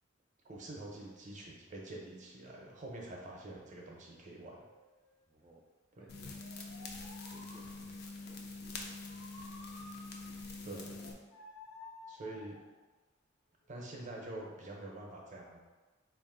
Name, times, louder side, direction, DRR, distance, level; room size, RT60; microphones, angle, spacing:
voice 1, 0.4-4.6 10.6-11.0 12.1-12.6 13.7-15.6, right 2 dB, 40° right, -1 dB, 0.7 m, -46 dB
sound 1, 4.0-5.5 6.2-8.1 9.1-10.6 11.3-12.8 13.6-13.9, left 2 dB, 85° left, 0.9 m, -55 dB
voice 2, 5.3-5.7 6.0-9.0, right 2 dB, 20° right, -5 dB, 0.3 m, -62 dB
sound 2, 6.1-11.1, left 3 dB, 55° left, 0.5 m, -45 dB
3.8 x 2.5 x 3.8 m, 1.3 s
head